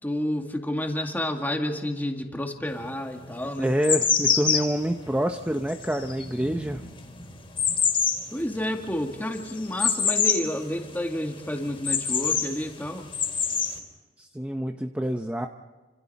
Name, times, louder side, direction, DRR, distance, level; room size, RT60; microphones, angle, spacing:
voice 1, 0.0-3.7 8.3-13.2, left 1 dB, 10° left, 3 dB, 2.0 m, -30 dB
sound 1, 2.7-2.8 3.4-10.6 10.9-11.0 11.3-12.5 13.0-13.8, left 6 dB, 30° left, 3.7 m, -26 dB
voice 2, 3.6-6.8 14.2-15.5, equal, 5° right, 5 dB, 0.7 m, -27 dB
29.0 x 26.5 x 4.2 m, 1.3 s
head